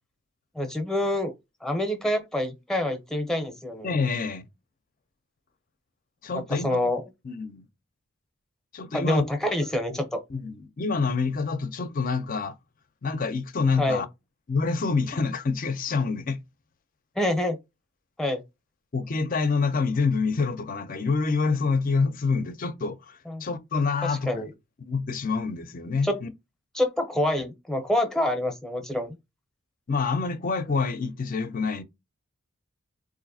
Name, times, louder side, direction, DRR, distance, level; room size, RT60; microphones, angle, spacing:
voice 1, 0.5-1.3 1.6-4.0 6.3-7.0 8.9-10.2 13.8-14.0 17.2-17.6 18.2-18.4 23.3-23.5 24.0-24.5 26.0-26.2 26.7-29.2, left 1 dB, ahead, 0.7 m, -27 dB
voice 2, 3.8-4.5 6.2-6.8 7.2-7.6 8.7-9.2 9.9-10.0 10.3-12.6 13.0-14.1 14.5-16.4 18.9-24.5 24.8-26.3 29.9-31.8, left 4 dB, 40° left, 0.5 m, -27 dB
4.0 x 2.6 x 2.6 m
head